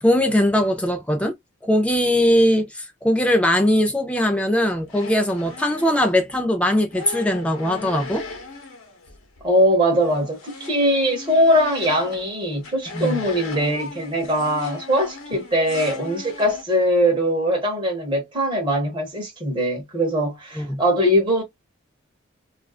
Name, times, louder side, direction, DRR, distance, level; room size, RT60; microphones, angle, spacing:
voice 1, 0.0-1.3 1.6-8.2 12.9-13.2 20.6-20.8, left 1 dB, 5° left, 0.4 m, -20 dB
sound 1, 4.6-6.4 6.9-9.5 9.7-16.6, left 4 dB, 85° left, 0.9 m, -38 dB
voice 2, 9.4-21.4, equal, 25° right, 1.0 m, -21 dB
2.4 x 2.3 x 2.3 m
head